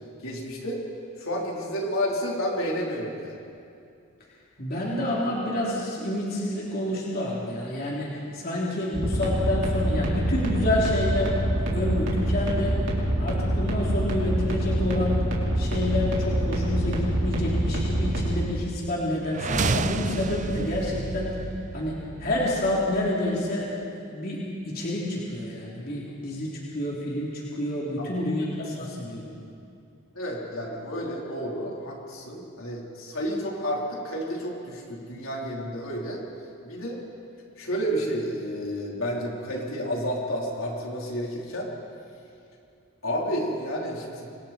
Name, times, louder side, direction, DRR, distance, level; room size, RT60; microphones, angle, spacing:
voice 1, 0.2-0.8 1.2-3.4 28.0-28.3 30.1-36.2 36.6-37.0 37.6-41.7 43.0-44.3, equal, 75° left, -3 dB, 4.2 m, -30 dB
voice 2, 4.6-11.3 11.7-12.8 13.2-15.3 15.6-21.3 21.7-29.4, left 1 dB, 45° left, -5 dB, 3.5 m, -28 dB
sound 1, 8.9-18.3, right 1 dB, 55° right, 4.4 m, -25 dB
sound 2, 19.3-23.3, right 3 dB, 35° right, 0.5 m, -30 dB
28.0 x 24.5 x 4.5 m, 2.5 s
head